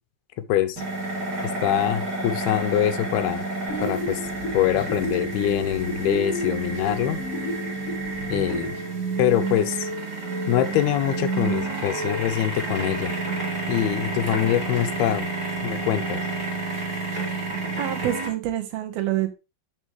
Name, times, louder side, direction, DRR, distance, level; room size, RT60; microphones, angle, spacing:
sound 1, 0.8-18.3, right 3 dB, 25° right, 3.8 m, -30 dB
voice 1, 1.4-3.4 3.8-4.2 4.5-7.2 8.3-8.7 9.2-9.9 10.5-13.1 13.7-15.3 15.6-16.2, left 11 dB, 85° left, 2.7 m, -24 dB
sound 2, 3.7-8.7, left 1 dB, 35° left, 4.1 m, -33 dB
voice 2, 17.8-19.3, right 13 dB, 80° right, 3.1 m, -27 dB
11.0 x 6.3 x 3.2 m
omnidirectional pair, 4.5 m